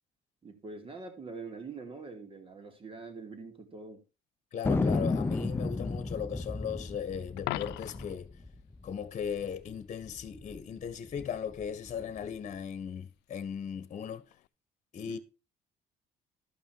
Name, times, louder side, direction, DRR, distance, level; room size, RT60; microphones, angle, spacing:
voice 1, 0.4-4.0 15.1-15.2, right 4 dB, 30° right, 2.8 m, -44 dB
voice 2, 4.5-8.3 8.8-14.2 14.9-15.2, left 7 dB, 45° left, 1.3 m, -37 dB
Thunder, 4.6-9.5 9.7-9.8 10.0-10.6 11.1-12.3, left 3 dB, 15° left, 0.7 m, -33 dB
Coin (dropping), 7.4-8.2 14.3-14.5, left 20 dB, 85° left, 0.4 m, -37 dB
13.0 x 5.5 x 4.7 m
cardioid pair, 110°, 17 cm